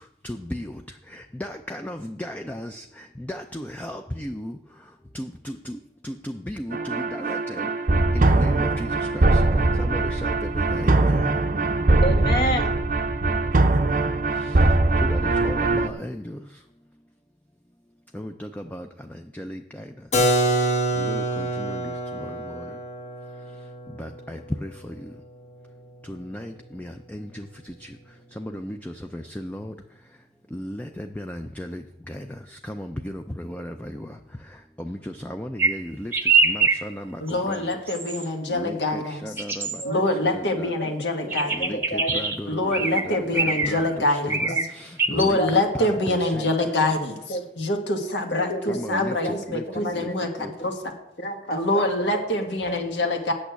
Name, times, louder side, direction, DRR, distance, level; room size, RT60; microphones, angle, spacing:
voice 1, 0.2-0.8 1.1-4.6 5.1-5.8 6.0-7.7 8.1-9.4 9.8-11.3 14.4-14.6 15.1-16.4 18.1-18.9 19.3-19.9 20.9-21.9 22.3-22.6 24.0-25.1 26.1-27.9 28.4-29.7 30.5-32.3 32.5-34.1 34.8-36.1 36.4-37.7 38.5-39.8 40.3-40.9 41.5-46.5 48.7-50.1 50.4-50.5, equal, 10° left, 5 dB, 0.4 m, -35 dB
sound 1, 6.7-15.9, right 2 dB, 45° right, 0.6 m, -21 dB
voice 2, 12.0-12.7 39.8-40.0 40.8-40.9 41.2-42.2 43.1-43.2 44.5-44.7 45.4-45.5 46.0-46.5 47.3-47.4 48.1-49.3 49.7-50.7 51.2-52.2 52.6-52.8, equal, 55° left, 5 dB, 1.3 m, -31 dB
Keyboard (musical), 20.1-25.7, right 1 dB, 40° left, 1.0 m, -26 dB
sound 2, 35.6-35.7 36.1-36.8 37.3-37.5 37.9-38.2 39.4-39.8 41.3-42.4 42.7-43.0 43.3-43.9 44.3-44.7 45.0-45.3, right 4 dB, 10° right, 0.8 m, -23 dB
voice 3, 37.2-39.4 39.8-41.7 42.5-44.4 45.1-50.9 51.5-53.3, left 2 dB, 80° left, 3 dB, 1.6 m, -25 dB
8.6 x 6.2 x 8.0 m, 0.88 s
head